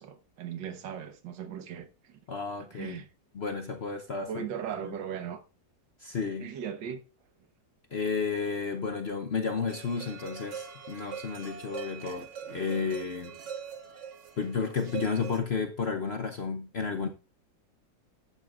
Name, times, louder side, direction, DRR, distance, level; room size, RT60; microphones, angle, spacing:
voice 1, 0.0-2.2 2.6-3.1 4.3-5.4 6.4-7.0, right 8 dB, 85° right, 1.8 m, -38 dB
voice 2, 2.3-3.0 3.3-4.4 6.0-6.5 7.9-13.3 14.4-17.1, left 5 dB, 55° left, 0.7 m, -32 dB
sound 1, 9.7-15.4, right 7 dB, 50° right, 1.2 m, -42 dB
13.5 x 7.9 x 2.4 m
omnidirectional pair, 1.9 m